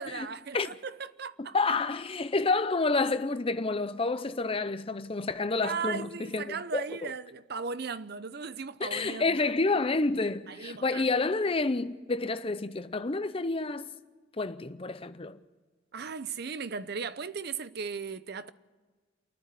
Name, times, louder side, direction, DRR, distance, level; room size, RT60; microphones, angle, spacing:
voice 1, 0.0-1.6 5.6-9.5 10.5-11.2 15.9-18.5, right 5 dB, 55° right, 0.7 m, -37 dB
voice 2, 1.5-7.1 8.8-13.9 14.4-15.4, left 3 dB, 30° left, 0.7 m, -29 dB
28.0 x 10.0 x 9.2 m
head